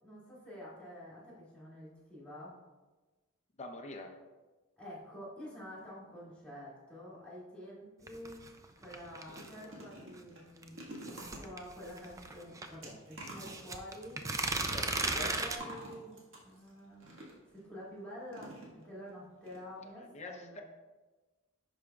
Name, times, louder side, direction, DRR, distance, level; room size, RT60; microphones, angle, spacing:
voice 1, 0.0-2.6 4.8-8.4 8.8-14.2 14.7-17.2 17.5-20.6, equal, 5° left, -7 dB, 2.3 m, -48 dB
voice 2, 3.6-4.1 14.7-15.3 20.1-20.6, left 2 dB, 30° left, 3 dB, 0.6 m, -45 dB
sound 1, 8.1-9.6 10.6-12.7 13.2-15.6, right 3 dB, 15° right, 0.4 m, -36 dB
sound 2, 8.8-17.6 18.3-19.1 19.4-19.6 19.8-19.9, right 1 dB, 60° right, 1.6 m, -50 dB
11.0 x 5.0 x 2.3 m, 1.2 s
head